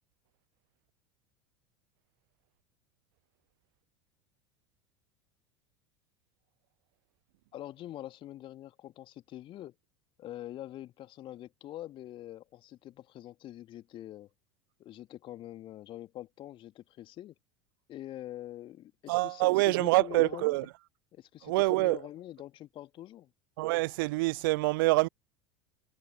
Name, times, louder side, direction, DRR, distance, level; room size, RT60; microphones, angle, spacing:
voice 1, 7.5-9.8 10.2-14.3 14.8-17.3 17.9-20.6 21.1-23.3, left 13 dB, 40° left, 2.5 m, -44 dB
voice 2, 19.1-20.7 21.4-22.0 23.6-25.1, right 22 dB, 55° right, 0.4 m, -26 dB
figure-of-eight pair, 75°, 14 cm